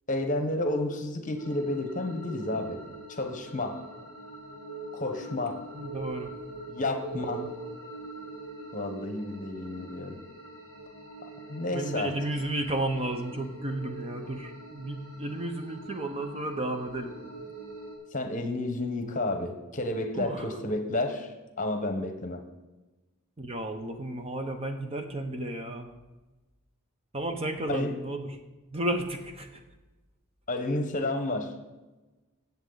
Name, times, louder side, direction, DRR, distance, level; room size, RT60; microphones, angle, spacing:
voice 1, 0.1-2.8 3.1-3.8 4.9-5.6 6.7-7.5 8.7-10.2 11.5-12.1 18.1-22.4 27.7-27.9 30.5-31.5, left 2 dB, 35° left, 6 dB, 1.1 m, -31 dB
sound 1, 1.4-18.0, right 2 dB, 80° right, 2.9 m, -43 dB
voice 2, 5.7-6.3 7.1-7.5 11.7-17.1 20.1-20.5 23.4-25.9 27.1-28.4 28.7-29.6, right 1 dB, 25° right, 5 dB, 0.9 m, -33 dB
16.0 x 7.2 x 4.0 m, 1.1 s
head